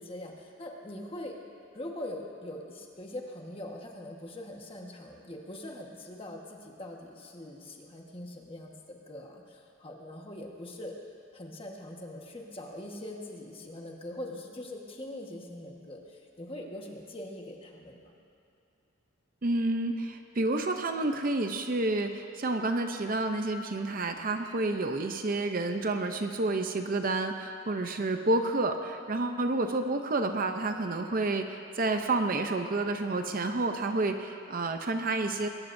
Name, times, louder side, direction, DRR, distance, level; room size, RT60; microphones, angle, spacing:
voice 1, 0.0-1.3 1.7-10.9 11.3-18.1, left 1 dB, 25° left, 0 dB, 1.4 m, -42 dB
voice 2, 19.4-35.5, right 2 dB, 40° right, 6 dB, 0.6 m, -29 dB
21.0 x 18.5 x 2.7 m, 2.6 s
head